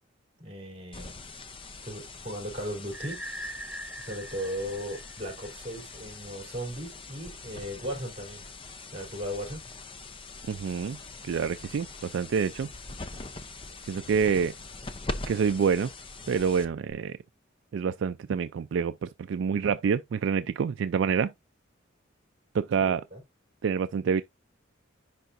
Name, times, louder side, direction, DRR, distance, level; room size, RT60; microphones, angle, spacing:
voice 1, 0.4-1.1 1.8-3.6 4.0-8.4 8.9-9.6 22.8-23.2, equal, 30° right, 3.5 m, -37 dB
sound 1, 0.9-16.9, left 3 dB, 25° left, 0.6 m, -42 dB
sound 2, 2.9-5.8, right 1 dB, 5° right, 0.9 m, -42 dB
voice 2, 10.5-11.0 11.2-12.7 13.8-14.6 15.3-15.9 16.3-17.2 17.7-21.3 22.5-23.0 23.6-24.2, right 6 dB, 65° right, 0.3 m, -27 dB
10.5 x 3.9 x 2.5 m
head